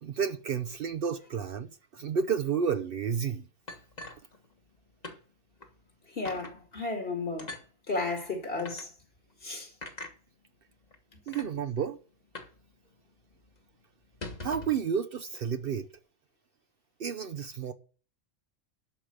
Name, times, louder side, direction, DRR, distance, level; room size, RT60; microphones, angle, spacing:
voice 1, 0.0-3.5 11.3-12.0 14.4-15.9 17.0-17.7, right 7 dB, 55° right, 0.8 m, -31 dB
sound 1, 3.7-4.8 5.0-5.2 5.6-5.7 6.2-6.5 7.4-7.7 8.6-8.8 9.8-10.1 10.9-11.0 11.3-11.5 12.3-12.6 12.9-13.0 13.3-13.5 14.0-14.8, left 2 dB, 35° left, 1.4 m, -42 dB
voice 2, 6.1-7.5 7.9-8.9 9.4-9.7, left 3 dB, 50° left, 2.3 m, -33 dB
11.5 x 5.0 x 7.7 m
omnidirectional pair, 1.2 m